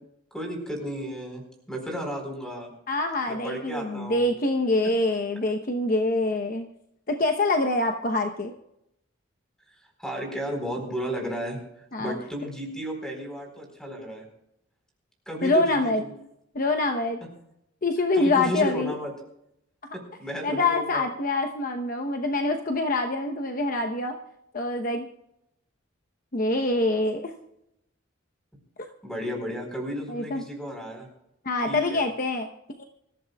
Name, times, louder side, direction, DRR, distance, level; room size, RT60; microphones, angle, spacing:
voice 1, 0.3-1.4 1.7-2.7 3.3-4.3 10.0-11.6 12.0-14.3 15.3-16.1 17.2-17.3 18.1-19.1 19.9-21.1 29.0-31.1 31.7-32.0, equal, 5° left, 2 dB, 4.2 m, -33 dB
voice 2, 2.9-6.7 7.1-8.5 11.9-12.2 15.4-16.0 16.5-17.2 17.8-18.9 20.4-24.2 24.5-25.1 26.3-27.3 30.1-30.4 31.4-32.5 32.8-32.9, left 2 dB, 45° left, 4 dB, 0.9 m, -25 dB
25.5 x 14.0 x 2.3 m, 0.81 s
head